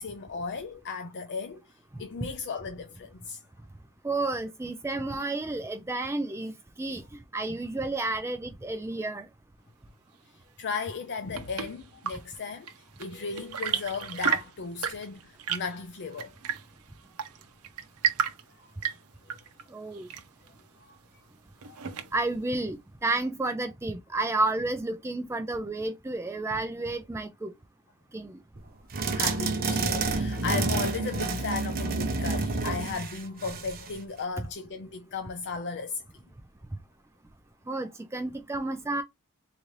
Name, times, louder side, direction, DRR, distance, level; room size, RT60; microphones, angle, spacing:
voice 1, 0.0-1.6 2.0-3.4 10.6-16.3 18.6-18.7 19.8-19.9 20.8-21.0 21.6-21.8 29.1-36.0, left 5 dB, 50° left, 0.5 m, -36 dB
voice 2, 4.0-6.5 6.8-9.3 19.7-20.1 22.1-27.5 28.1-28.4 37.7-39.0, right 2 dB, 10° right, 0.4 m, -31 dB
Chirp tweet / Engine / Tap, 10.9-22.4, right 7 dB, 80° right, 0.8 m, -35 dB
sound 1, 28.9-34.0, right 3 dB, 40° right, 0.7 m, -29 dB
3.8 x 2.6 x 3.1 m
head